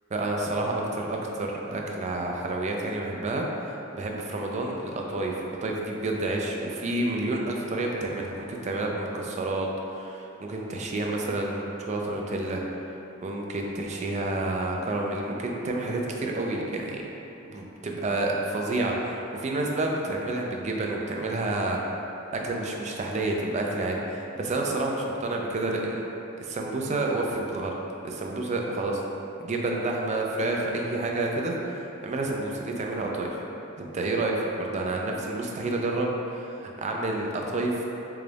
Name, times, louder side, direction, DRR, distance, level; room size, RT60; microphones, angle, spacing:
voice 1, 0.1-9.7 9.9-12.6 13.2-17.0 17.5-21.8 22.3-26.1 26.4-27.7 28.0-29.0 29.4-33.4 33.8-37.8, right 2 dB, 35° right, 0 dB, 0.3 m, -29 dB
3.9 x 2.3 x 3.3 m, 2.9 s
head